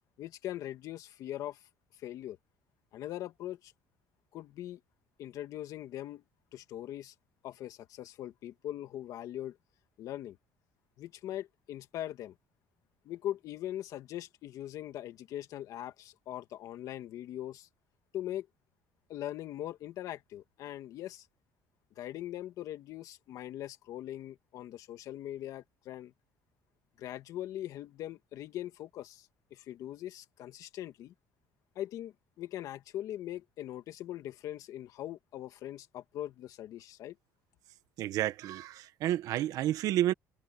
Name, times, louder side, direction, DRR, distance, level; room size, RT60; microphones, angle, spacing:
voice 1, 0.2-1.6 1.9-2.4 2.9-3.7 4.3-4.8 5.2-6.2 6.5-7.1 7.4-9.6 10.0-10.4 11.0-12.4 13.1-17.7 18.1-18.5 19.1-21.3 22.0-26.1 27.0-31.1 31.8-37.2, left 12 dB, 60° left, 2.0 m, -41 dB
voice 2, 38.0-40.1, right 13 dB, 65° right, 1.3 m, -30 dB
cardioid pair, 140°, 7 cm